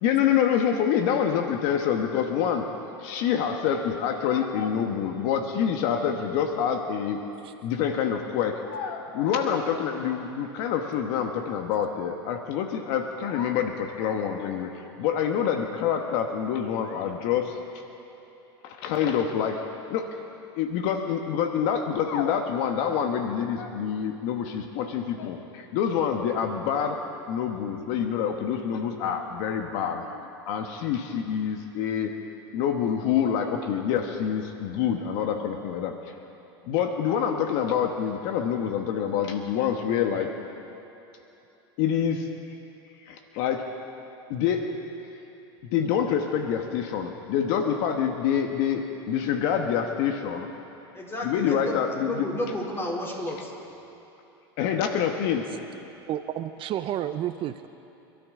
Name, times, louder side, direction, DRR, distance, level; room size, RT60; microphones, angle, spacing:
voice 1, 0.0-2.7 3.0-7.2 7.6-17.6 18.6-19.6 19.9-20.1 20.6-27.0 27.3-32.1 32.5-35.9 36.7-40.3 41.8-42.3 43.0-43.7 44.3-44.7 45.7-50.5 51.2-52.2 54.6-55.5, left 8 dB, 60° left, 5 dB, 1.3 m, -26 dB
voice 2, 50.9-53.5, left 1 dB, 20° left, -2 dB, 4.0 m, -32 dB
voice 3, 56.1-57.7, right 11 dB, 40° right, 10 dB, 0.6 m, -31 dB
28.0 x 12.5 x 3.8 m, 2.9 s
hypercardioid pair, 100°, 13 cm